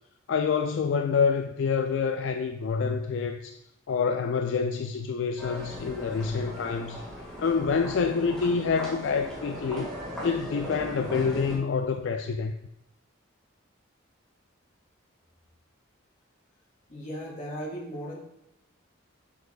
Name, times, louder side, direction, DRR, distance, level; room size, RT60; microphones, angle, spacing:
voice 1, 0.3-3.6 3.9-7.0 7.4-9.9 10.2-12.5, left 5 dB, 65° left, 6 dB, 0.3 m, -27 dB
sound 1, 5.4-11.6, equal, 5° left, 1.6 m, -38 dB
voice 2, 16.9-18.2, equal, 35° left, -2 dB, 1.6 m, -36 dB
7.1 x 6.4 x 2.3 m, 0.87 s
head